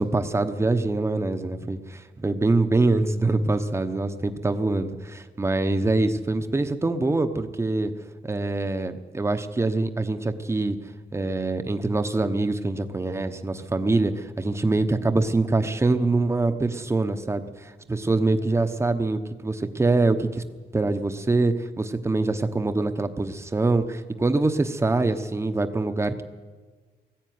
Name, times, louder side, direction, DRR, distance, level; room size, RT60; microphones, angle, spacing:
voice 1, 0.0-7.9 8.2-10.8 11.1-20.4 20.7-26.2, right 2 dB, 15° right, 8 dB, 1.0 m, -24 dB
19.5 x 15.0 x 9.5 m, 1.4 s
wide cardioid pair, 165°, 18 cm